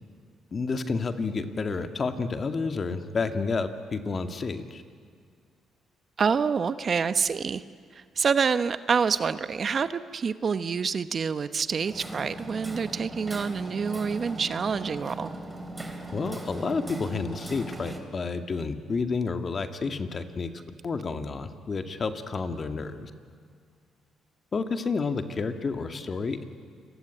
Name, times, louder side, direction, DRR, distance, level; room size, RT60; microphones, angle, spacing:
voice 1, 0.5-4.8 16.1-20.5 20.8-23.1 24.5-26.4, left 4 dB, 40° left, 7 dB, 2.2 m, -30 dB
voice 2, 6.2-7.6 7.9-15.3, right 6 dB, 45° right, 12 dB, 1.0 m, -27 dB
Hammer, 11.9-18.0, right 2 dB, 15° right, 3.7 m, -39 dB
29.0 x 22.0 x 9.1 m, 2.1 s
cardioid pair, 90°, 0 cm